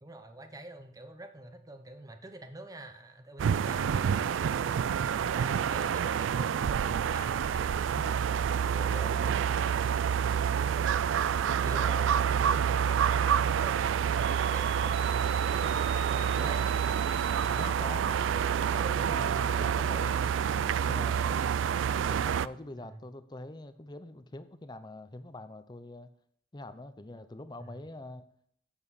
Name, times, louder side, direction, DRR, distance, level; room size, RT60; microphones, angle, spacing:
voice 1, 0.0-4.7 5.0-9.4 18.7-19.6 22.8-23.0 27.6-27.8, right 1 dB, 20° right, 7 dB, 0.8 m, -47 dB
sound 1, 3.4-22.5, right 8 dB, 80° right, 0.3 m, -28 dB
voice 2, 11.6-12.1 17.4-18.2 18.9-21.4 22.1-26.1 26.5-28.2, left 2 dB, 20° left, 11 dB, 0.6 m, -44 dB
sound 2, 14.2-17.9, right 6 dB, 60° right, 0.7 m, -41 dB
8.4 x 7.2 x 4.1 m, 0.66 s
head